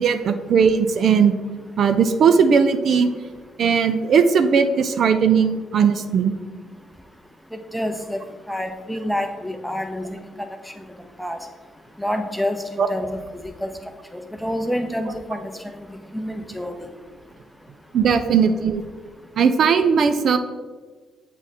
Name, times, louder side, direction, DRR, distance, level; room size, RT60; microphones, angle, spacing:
voice 1, 0.0-1.3 1.8-3.1 3.6-6.3 12.8-12.9 17.9-18.8 19.4-20.4, right 6 dB, 60° right, 9 dB, 0.4 m, -18 dB
voice 2, 7.5-8.2 8.5-10.0 10.4-10.5 11.2-11.4 12.0-13.1 13.6-13.7 14.4-15.5 16.1-16.9, equal, ahead, 5 dB, 0.7 m, -27 dB
7.2 x 3.6 x 4.2 m, 1.4 s
cardioid pair, 90°, 0 cm